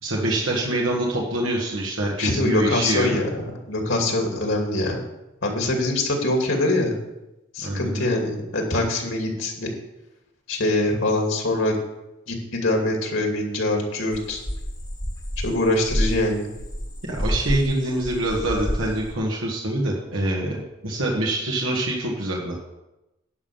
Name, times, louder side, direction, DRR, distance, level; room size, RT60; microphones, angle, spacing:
voice 1, 0.0-3.2 7.6-8.1 17.1-22.7, right 1 dB, 90° right, -2 dB, 1.7 m, -25 dB
voice 2, 2.2-3.3 3.7-5.0 5.4-7.0 7.5-9.7 10.5-11.8 12.3-14.4 15.4-16.5, left 2 dB, 70° left, 1 dB, 2.6 m, -23 dB
weird bird, 14.1-17.7 18.0-19.1, equal, 20° left, 1.2 m, -28 dB
11.0 x 5.7 x 7.1 m, 0.96 s
head